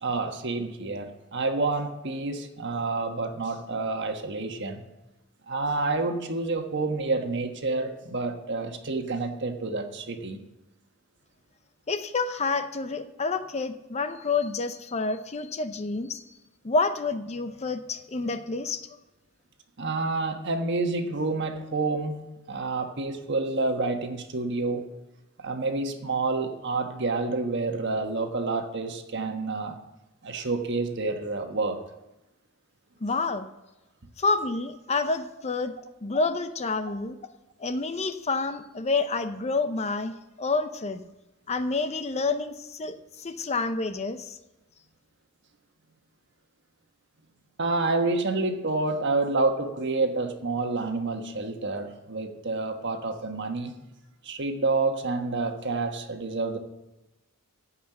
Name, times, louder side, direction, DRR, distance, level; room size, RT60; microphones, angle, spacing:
voice 1, 0.0-4.8 5.5-10.4 19.8-24.9 25.4-29.8 30.2-31.8 47.6-53.7 54.2-56.6, right 3 dB, 55° right, 5 dB, 1.4 m, -28 dB
voice 2, 11.9-16.2 16.6-18.9 33.0-33.5 34.2-35.7 36.0-37.2 37.6-41.0 41.5-44.4, left 3 dB, 30° left, 10 dB, 0.6 m, -28 dB
15.0 x 5.7 x 7.9 m, 0.98 s
head